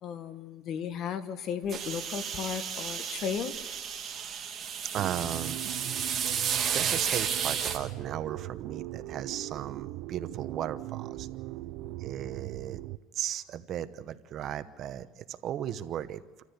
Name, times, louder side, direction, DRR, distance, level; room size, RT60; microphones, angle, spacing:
voice 1, 0.0-3.5 11.8-11.9, left 7 dB, 50° left, 11 dB, 1.5 m, -35 dB
sound 1, 1.7-7.8, right 7 dB, 35° right, 2.5 m, -32 dB
voice 2, 4.0-4.5 4.9-5.6 6.7-11.3 12.0-12.8 13.1-16.4, right 10 dB, 50° right, 12 dB, 0.9 m, -36 dB
sound 2, 5.0-13.0, right 17 dB, 70° right, 0.6 m, -40 dB
28.0 x 14.0 x 8.4 m, 1.3 s
cardioid pair, 125°, 0 cm